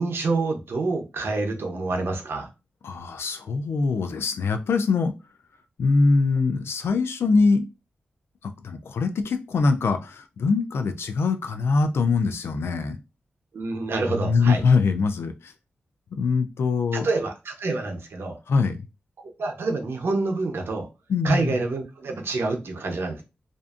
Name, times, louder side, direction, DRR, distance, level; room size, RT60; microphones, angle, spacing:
voice 1, 0.0-2.5 13.5-14.6 16.9-18.4 19.4-20.9 21.2-23.2, right 3 dB, 70° right, 0.6 m, -27 dB
voice 2, 2.8-5.1 5.8-7.6 8.4-13.0 14.1-15.5 16.1-17.1 18.5-18.8 21.1-21.6, left 4 dB, 85° left, 0.4 m, -23 dB
2.5 x 2.5 x 2.4 m
cardioid pair, 70°, 4 cm